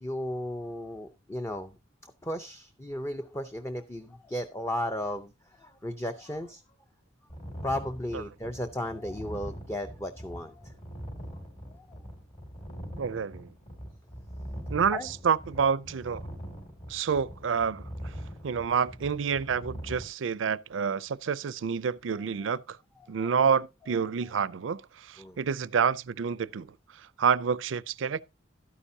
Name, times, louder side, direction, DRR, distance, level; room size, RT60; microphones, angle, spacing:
voice 1, 0.0-6.6 7.6-10.7 11.7-12.0 14.9-15.1 22.1-22.3 23.0-23.3 23.9-24.3 25.2-25.4, left 1 dB, 15° left, 0.6 m, -35 dB
sound 1, 7.3-20.0, equal, 35° left, 2.7 m, -42 dB
voice 2, 13.0-13.5 14.7-16.2 16.9-17.9 18.4-22.8 23.1-24.8 25.1-26.7 27.2-28.2, right 6 dB, 75° right, 0.4 m, -28 dB
12.0 x 9.9 x 2.7 m
head